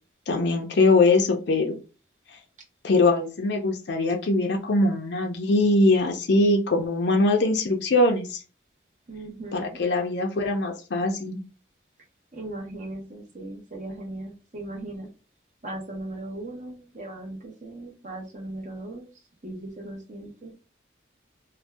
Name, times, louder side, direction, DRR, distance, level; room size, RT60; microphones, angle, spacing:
voice 1, 0.3-1.7 2.8-8.4 9.5-11.4, left 2 dB, 65° left, 2 dB, 0.5 m, -22 dB
voice 2, 9.1-9.8 12.3-15.1 15.6-19.1 19.4-20.5, right 1 dB, 40° right, -1 dB, 0.9 m, -38 dB
2.6 x 2.2 x 3.4 m, 0.33 s
head